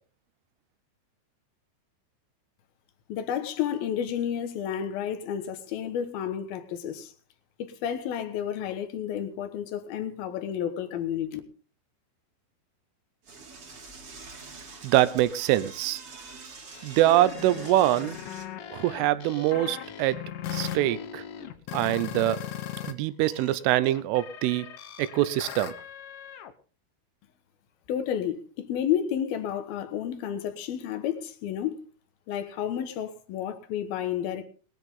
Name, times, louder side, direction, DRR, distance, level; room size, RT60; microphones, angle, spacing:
voice 1, 3.1-7.1 7.6-11.4 27.9-31.8 32.3-34.4, left 9 dB, 65° left, 2.5 m, -31 dB
Door / Toilet flush, 13.2-18.5, right 4 dB, 35° right, 2.7 m, -46 dB
voice 2, 14.8-16.0 16.8-18.2 18.7-20.2 20.5-21.2 21.7-22.4 22.8-24.7 25.0-25.7, right 14 dB, 85° right, 3.3 m, -24 dB
sound 1, 16.7-22.9 23.2-26.5, left 10 dB, 85° left, 1.9 m, -38 dB
20.5 x 11.0 x 3.8 m
omnidirectional pair, 5.7 m